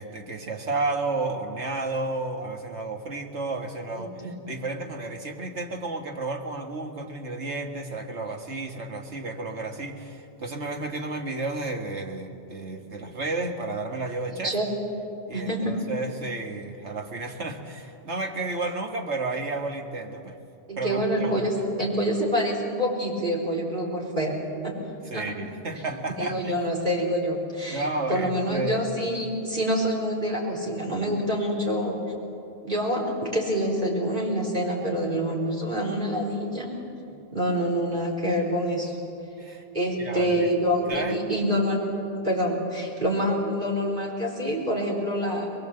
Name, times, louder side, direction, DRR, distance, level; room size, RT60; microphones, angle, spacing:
voice 1, 0.0-14.6 15.3-20.4 20.8-21.7 25.0-26.6 27.7-28.8 37.1-37.2 39.4-39.6 40.0-40.5 40.9-41.2, right 2 dB, 85° right, 3 dB, 2.0 m, -32 dB
voice 2, 3.9-4.3 14.4-14.7 15.3-15.8 20.7-21.5 21.8-24.4 24.6-24.7 25.1-25.2 26.2-32.0 32.6-36.8 37.3-39.0 39.7-41.8 42.2-45.5, equal, 45° right, -3 dB, 4.4 m, -26 dB
22.5 x 22.0 x 7.8 m, 2.7 s
omnidirectional pair, 1.1 m